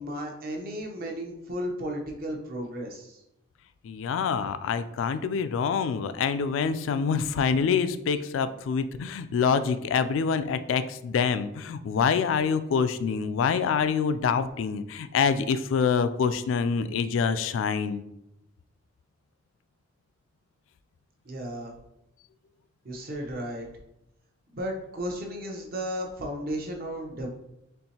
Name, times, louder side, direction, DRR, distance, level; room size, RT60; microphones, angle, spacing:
voice 1, 0.0-3.2 21.2-21.7 22.8-23.7 24.5-27.3, equal, 50° right, 1 dB, 0.8 m, -34 dB
voice 2, 3.8-18.0, left 6 dB, 75° left, 12 dB, 0.3 m, -26 dB
4.4 x 3.2 x 2.8 m, 0.84 s
head